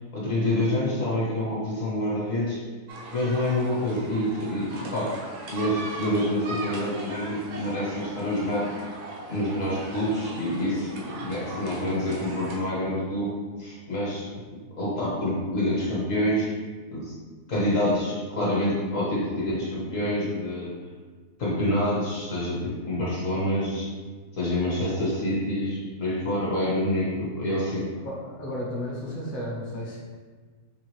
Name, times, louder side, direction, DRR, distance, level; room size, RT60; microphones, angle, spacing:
voice 1, 0.1-2.6 3.1-5.2 5.5-8.7 9.3-13.3 13.6-14.2 14.8-16.5 16.9-17.1 17.5-20.7 21.4-23.9 24.3-27.9, left 1 dB, 55° left, -6 dB, 1.4 m, -27 dB
sound 1, 2.9-12.6, right 2 dB, 75° right, 1.2 m, -39 dB
voice 2, 28.0-30.0, equal, 40° left, -6 dB, 0.9 m, -33 dB
5.7 x 2.5 x 3.1 m, 1.4 s
omnidirectional pair, 1.7 m